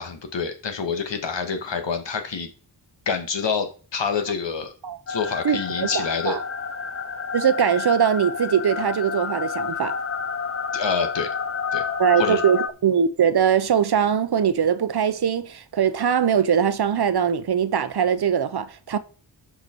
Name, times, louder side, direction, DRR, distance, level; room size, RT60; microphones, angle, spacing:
voice 1, 0.0-2.5 3.0-4.7 5.1-6.4 10.7-11.3 11.7-11.8 12.2-12.4, left 5 dB, 80° left, 1.8 m, -27 dB
sound 1, 5.1-12.7, left 6 dB, 30° left, 0.7 m, -29 dB
voice 2, 5.4-6.4 7.3-10.0 12.0-19.0, right 8 dB, 60° right, 0.8 m, -21 dB
12.0 x 5.7 x 4.6 m
wide cardioid pair, 140°, 43 cm